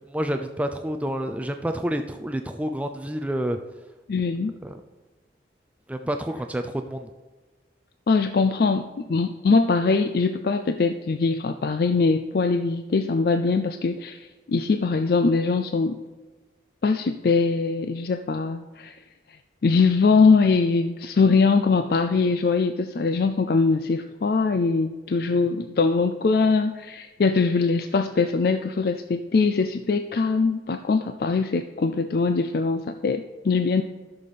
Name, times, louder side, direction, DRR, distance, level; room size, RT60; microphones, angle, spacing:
voice 1, 0.1-3.6 4.6-4.8 5.9-7.1, equal, 10° right, 6 dB, 0.4 m, -28 dB
voice 2, 4.1-4.5 8.1-16.0 16.8-19.0 19.6-33.8, left 4 dB, 55° left, 9 dB, 0.4 m, -22 dB
14.5 x 6.8 x 4.2 m, 1.3 s
head